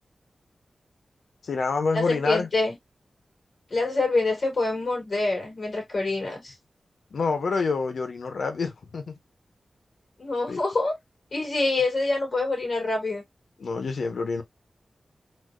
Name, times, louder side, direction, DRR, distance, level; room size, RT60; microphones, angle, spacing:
voice 1, 1.4-2.5 7.1-9.2 10.5-10.6 13.6-14.4, left 4 dB, 85° left, 0.9 m, -27 dB
voice 2, 1.9-2.7 3.7-6.5 10.2-10.9 11.3-13.2, left 2 dB, 60° left, 2.6 m, -26 dB
4.2 x 2.2 x 2.4 m
wide cardioid pair, 95°, 0 cm